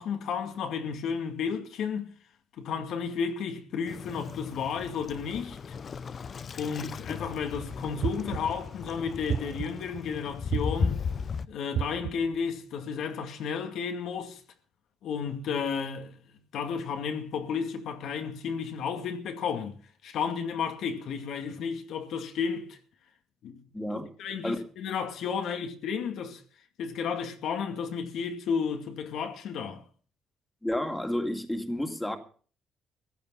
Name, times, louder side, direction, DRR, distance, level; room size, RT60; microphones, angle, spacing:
voice 1, 0.0-2.1 2.6-5.7 6.6-11.0 11.5-14.4 15.0-16.2 16.5-19.8 20.0-22.8 23.4-26.4 26.8-29.8, left 6 dB, 80° left, 2.2 m, -32 dB
Waves surf, 3.9-11.5, left 6 dB, 45° left, 0.7 m, -36 dB
sound 1, 8.0-8.7 9.3-9.9 10.5-11.2 11.7-12.4, right 8 dB, 65° right, 0.9 m, -32 dB
voice 2, 23.7-24.1 24.4-24.6 30.6-32.2, left 1 dB, 10° left, 2.4 m, -30 dB
15.5 x 11.0 x 5.6 m
cardioid pair, 90°, 0 cm